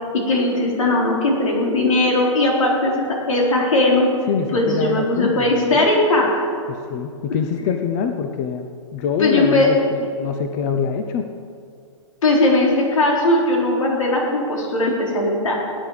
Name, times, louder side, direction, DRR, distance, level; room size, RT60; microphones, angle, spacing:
voice 1, 0.1-4.1 4.5-6.5 9.2-9.7 12.2-15.7, left 2 dB, 85° left, -2 dB, 4.3 m, -18 dB
voice 2, 4.3-5.9 6.7-11.3, left 6 dB, 30° left, 6 dB, 0.7 m, -25 dB
18.5 x 9.6 x 5.0 m, 2.3 s
hypercardioid pair, 155°, 17 cm